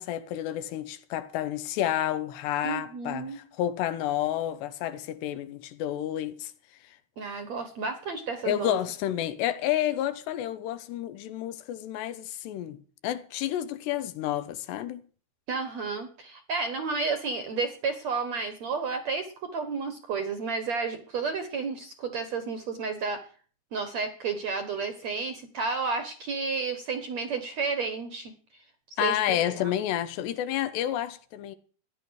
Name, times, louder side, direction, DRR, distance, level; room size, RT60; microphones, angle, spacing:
voice 1, 0.0-6.5 8.5-12.8 13.0-15.0 29.0-31.6, left 12 dB, 80° left, 3.2 m, -30 dB
voice 2, 2.6-3.4 7.2-8.8 15.5-23.2 23.7-28.3 29.0-29.4, right 4 dB, 60° right, 1.9 m, -31 dB
15.5 x 11.0 x 6.4 m
omnidirectional pair, 4.9 m